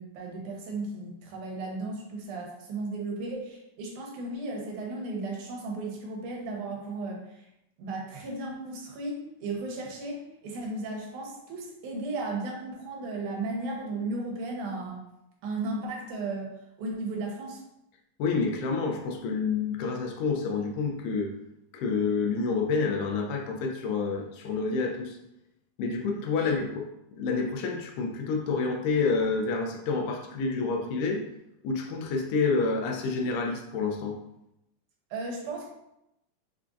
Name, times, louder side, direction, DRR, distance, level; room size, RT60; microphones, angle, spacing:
voice 1, 0.0-7.2 7.8-9.2 9.4-15.0 15.4-16.5 16.8-17.6 26.4-26.6 35.1-35.7, right 2 dB, 80° right, 0 dB, 2.3 m, -35 dB
voice 2, 18.2-21.3 21.7-25.2 25.8-26.8 27.1-31.2 31.6-34.2, left 4 dB, 85° left, 3 dB, 2.2 m, -28 dB
5.5 x 3.7 x 2.5 m, 0.85 s
omnidirectional pair, 3.6 m